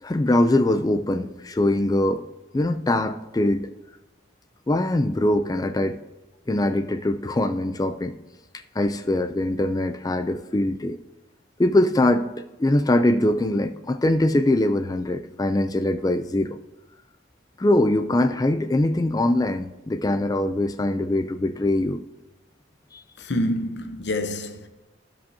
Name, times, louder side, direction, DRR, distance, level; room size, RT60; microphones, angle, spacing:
voice 1, 0.0-2.2 2.5-3.7 4.7-6.0 6.5-8.2 8.8-11.0 11.6-16.6 17.6-22.0 22.9-23.0, left 1 dB, 20° left, 0.3 m, -22 dB
voice 2, 23.2-24.7, left 1 dB, 65° left, 0.9 m, -27 dB
15.5 x 5.3 x 2.7 m
head